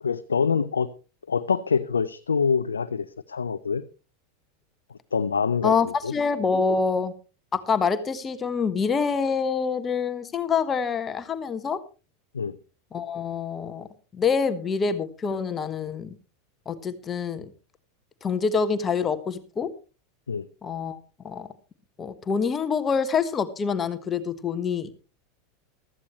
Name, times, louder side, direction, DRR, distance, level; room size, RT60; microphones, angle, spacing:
voice 1, 0.0-0.9 1.3-3.8 5.1-6.1 12.3-12.6 20.3-20.5, left 5 dB, 85° left, 0.5 m, -25 dB
voice 2, 5.6-7.1 7.5-11.8 12.9-13.9 14.1-16.1 16.6-17.5 18.2-19.7 20.6-21.0 21.2-21.5 22.0-24.9, left 5 dB, 25° left, 1.3 m, -26 dB
15.5 x 13.5 x 3.1 m
hypercardioid pair, 90°, 0 cm